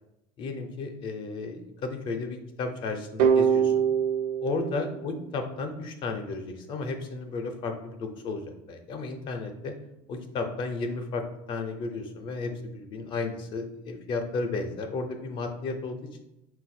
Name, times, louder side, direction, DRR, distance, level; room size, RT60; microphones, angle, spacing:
voice 1, 0.4-3.7 4.4-9.7 10.1-16.0, left 3 dB, 40° left, 6 dB, 0.4 m, -33 dB
sound 1, 3.2-6.0, right 7 dB, 90° right, 0.5 m, -25 dB
4.6 x 2.2 x 4.1 m, 0.88 s
cardioid pair, 175°, 13 cm